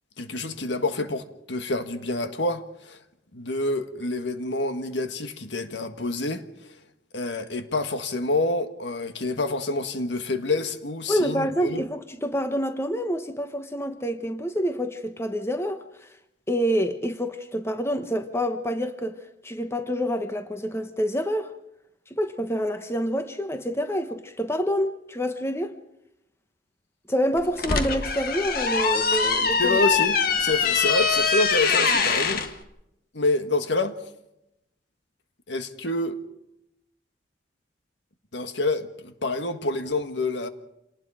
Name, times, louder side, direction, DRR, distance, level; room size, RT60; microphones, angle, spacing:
voice 1, 0.2-3.0 3.3-6.4 7.1-11.8 29.6-32.4 33.1-33.9 35.5-36.2 38.3-40.5, left 2 dB, 75° left, 1.6 m, -27 dB
voice 2, 11.1-15.8 16.5-19.2 19.4-21.5 22.1-25.7 27.1-29.8, equal, 15° left, 1.3 m, -27 dB
sound 1, 27.4-32.5, left 5 dB, 55° left, 1.7 m, -23 dB
27.5 x 19.0 x 5.0 m
head